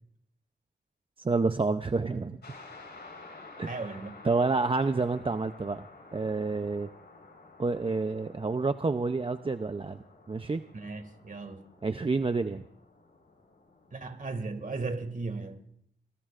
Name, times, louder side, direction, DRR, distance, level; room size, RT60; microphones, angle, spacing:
voice 1, 1.2-2.4 3.6-4.0 4.2-5.9 6.1-6.9 7.6-10.6 11.8-12.6, right 3 dB, 30° right, 0.6 m, -29 dB
sound 1, 2.4-14.5, left 3 dB, 70° left, 4.6 m, -52 dB
voice 2, 3.7-4.1 10.7-11.7 13.9-15.6, right 3 dB, 50° right, 2.1 m, -36 dB
23.5 x 21.0 x 2.5 m
cardioid pair, 65°, 18 cm